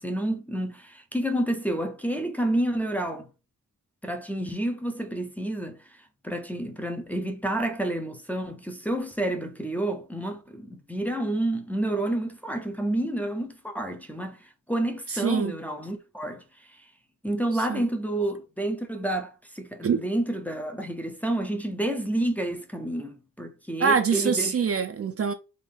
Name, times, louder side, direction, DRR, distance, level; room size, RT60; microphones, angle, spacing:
voice 1, 0.0-3.3 4.0-5.8 6.2-16.4 17.2-24.6, right 1 dB, 5° left, 0.5 m, -29 dB
voice 2, 15.2-15.6 17.7-17.9 19.8-20.0 23.8-25.3, right 6 dB, 45° right, 0.5 m, -24 dB
3.5 x 2.5 x 3.6 m
wide cardioid pair, 140°, 33 cm